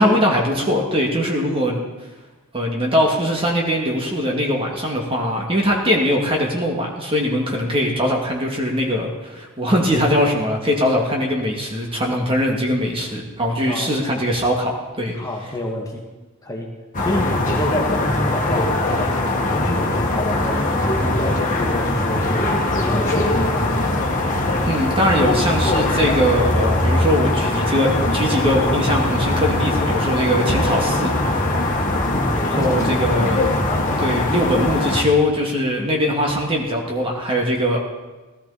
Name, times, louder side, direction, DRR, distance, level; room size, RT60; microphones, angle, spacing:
voice 1, 0.0-1.8 2.5-15.2 24.7-31.6 32.4-33.4 34.0-37.8, equal, 25° right, 0 dB, 2.3 m, -21 dB
voice 2, 15.1-16.0 16.4-16.7 17.0-22.5 22.8-23.6 32.5-33.3, left 1 dB, 15° left, -1 dB, 1.8 m, -28 dB
sound 1, 16.9-35.0, left 2 dB, 40° left, 1.9 m, -21 dB
18.0 x 13.5 x 4.3 m, 1.2 s
head